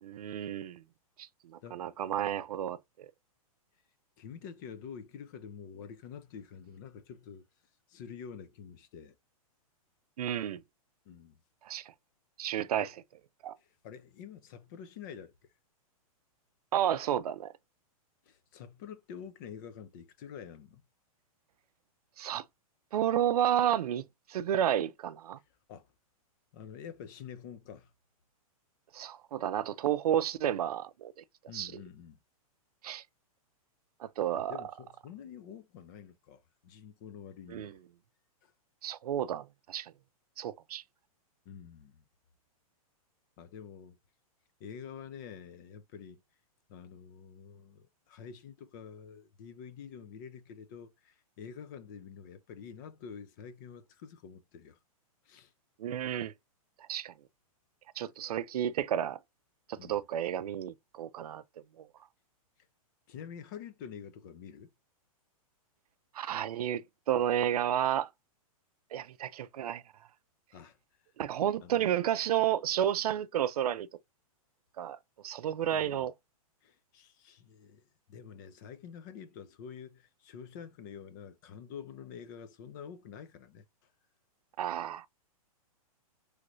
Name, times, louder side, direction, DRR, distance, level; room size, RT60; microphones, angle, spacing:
voice 1, 0.0-0.8 1.2-3.1 10.2-10.6 11.6-11.9 12.4-12.9 13.4-13.6 16.7-17.5 22.2-22.4 22.9-25.4 28.9-31.1 31.5-31.8 32.8-33.0 34.0-34.7 37.5-37.7 38.8-39.9 40.4-40.8 55.8-56.3 56.9-57.1 58.0-59.2 59.7-61.4 61.8-61.9 66.1-68.1 68.9-69.8 71.2-73.9 74.8-75.0 75.2-76.1 84.6-85.1, right 10 dB, 90° right, 0.4 m, -31 dB
voice 2, 4.2-7.4 7.9-9.1 11.1-11.4 12.7-12.9 13.8-15.3 18.3-20.8 25.7-25.9 26.5-27.9 31.5-32.2 34.3-37.8 38.4-38.5 41.5-42.0 43.4-44.0 44.6-46.2 46.7-54.8 55.3-55.5 59.8-60.0 63.1-64.7 70.5-70.8 71.6-71.9 75.6-76.1 76.6-77.8 78.1-83.6, left 7 dB, 35° left, 0.4 m, -47 dB
3.1 x 2.5 x 3.0 m
hypercardioid pair, 155°, 19 cm